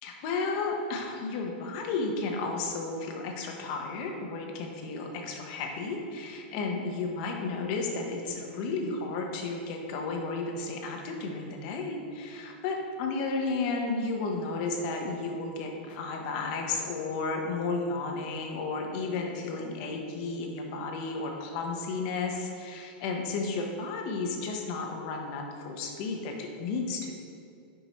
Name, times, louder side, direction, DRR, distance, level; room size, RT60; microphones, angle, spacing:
voice 1, 0.0-27.1, left 3 dB, 50° left, 2 dB, 1.1 m, -33 dB
9.2 x 5.2 x 3.1 m, 2.5 s
supercardioid pair, 140°, 5 cm